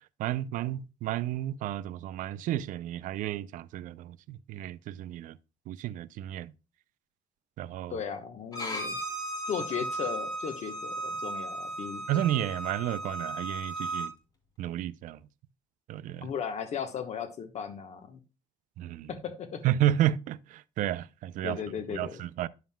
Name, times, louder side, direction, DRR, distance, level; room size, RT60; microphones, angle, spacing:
voice 1, 0.2-5.4 5.7-6.5 7.6-8.0 12.1-14.1 14.6-15.2 15.9-16.3 18.8-19.1 19.6-21.6 21.9-22.5, right 12 dB, 75° right, 0.4 m, -31 dB
voice 2, 7.9-9.0 9.5-12.0 16.2-18.2 19.1-19.6 21.4-22.2, left 7 dB, 55° left, 1.1 m, -36 dB
Bowed string instrument, 8.5-14.1, right 2 dB, 30° left, 2.7 m, -35 dB
10.0 x 7.4 x 2.2 m
cardioid pair, 115°, 14 cm